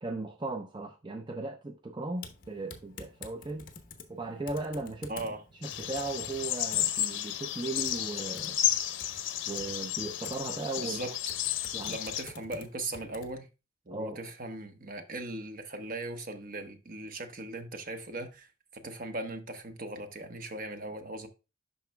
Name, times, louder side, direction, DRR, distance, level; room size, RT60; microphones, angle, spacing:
voice 1, 0.0-3.7 4.1-5.1 5.6-8.6 9.5-11.1 11.7-12.0 13.9-14.2, right 2 dB, 25° right, 0.6 m, -37 dB
Typing, 2.2-13.4, left 4 dB, 45° left, 0.9 m, -50 dB
voice 2, 5.1-5.4 10.8-11.1 11.5-13.5 13.9-21.3, right 2 dB, 50° right, 1.0 m, -39 dB
sound 1, 5.6-12.2, left 12 dB, 80° left, 0.6 m, -32 dB
12.0 x 4.2 x 2.2 m
head